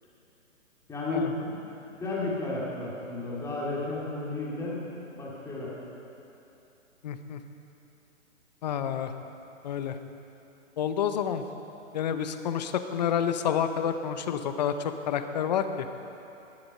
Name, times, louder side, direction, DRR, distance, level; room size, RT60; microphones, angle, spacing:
voice 1, 0.9-1.6 2.0-5.7, left 2 dB, 5° left, -6 dB, 2.3 m, -33 dB
voice 2, 7.0-7.4 8.6-9.1 9.6-9.9 10.8-11.4 11.9-15.9, left 8 dB, 35° left, 9 dB, 0.7 m, -29 dB
16.0 x 11.5 x 5.5 m, 2.9 s
hypercardioid pair, 145°, 40 cm